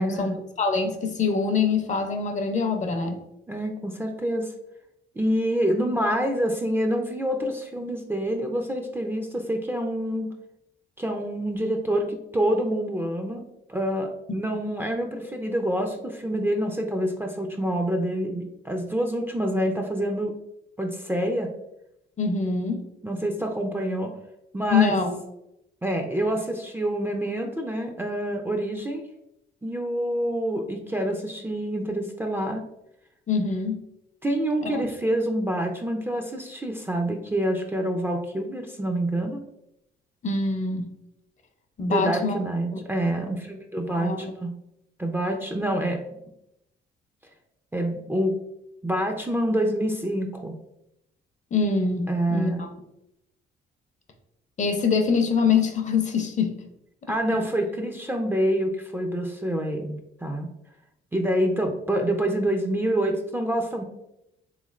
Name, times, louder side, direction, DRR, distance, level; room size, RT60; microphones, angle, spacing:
voice 1, 0.0-3.2 14.5-14.7 22.2-22.8 24.7-25.2 33.3-33.8 34.6-34.8 40.2-40.9 41.8-42.4 42.7-42.8 43.9-44.3 51.5-52.7 54.6-56.5, left 5 dB, 40° left, 6 dB, 0.5 m, -24 dB
voice 2, 3.5-4.5 5.2-10.3 11.0-20.4 20.8-21.5 23.0-24.1 24.5-24.9 25.8-29.1 29.6-32.6 34.2-39.4 41.8-44.5 45.0-46.0 47.7-48.4 48.8-50.5 52.1-52.6 57.1-60.5 61.1-63.8, right 1 dB, 10° right, 2 dB, 0.4 m, -27 dB
3.5 x 3.1 x 2.4 m, 0.83 s
cardioid pair, 90°, 20 cm